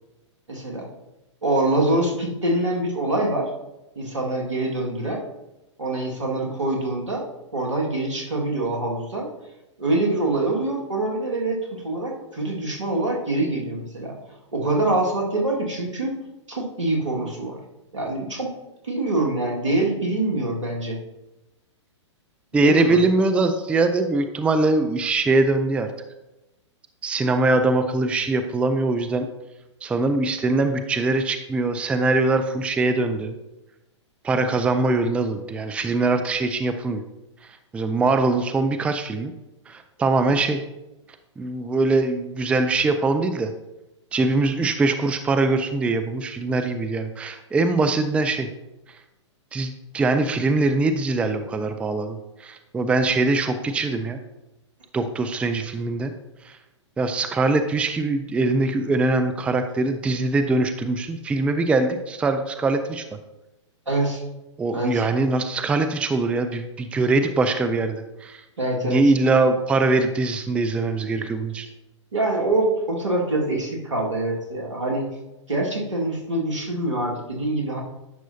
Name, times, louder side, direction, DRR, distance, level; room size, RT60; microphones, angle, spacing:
voice 1, 0.5-0.9 1.4-3.5 4.0-5.2 5.8-7.2 7.5-9.3 9.8-14.1 14.5-16.1 16.5-17.6 17.9-18.5 18.8-21.0 22.5-23.0 40.2-40.3 63.9-64.2 64.7-65.0 68.6-69.1 72.1-75.1 75.5-77.8, right 2 dB, 80° right, -1 dB, 1.9 m, -25 dB
voice 2, 22.5-25.9 27.0-29.3 29.8-33.3 34.2-37.0 37.7-39.3 39.7-40.6 41.4-43.5 44.1-48.5 49.5-54.2 54.9-56.1 56.4-56.6 57.0-63.0 64.6-68.4 68.8-71.7, right 3 dB, 10° right, 8 dB, 0.4 m, -22 dB
10.5 x 6.1 x 2.7 m, 0.97 s
figure-of-eight pair, 110°, 16 cm